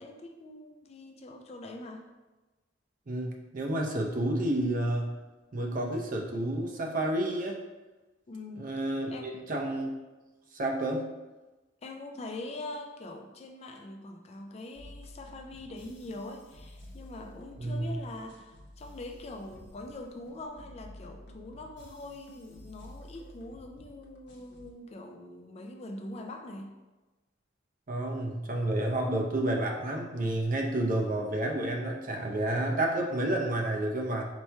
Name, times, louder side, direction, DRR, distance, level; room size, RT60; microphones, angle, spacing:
voice 1, 0.0-2.0 8.3-8.7 9.1-9.3 11.8-26.8, left 2 dB, 35° left, 4 dB, 0.3 m, -43 dB
voice 2, 3.1-5.2 5.5-7.6 8.6-9.9 10.5-11.0 17.6-18.0 27.9-34.3, right 1 dB, 45° right, 1 dB, 0.6 m, -30 dB
sound 1, 14.7-24.7, left 1 dB, 60° left, 0.7 m, -51 dB
4.2 x 2.2 x 4.5 m, 1.1 s
head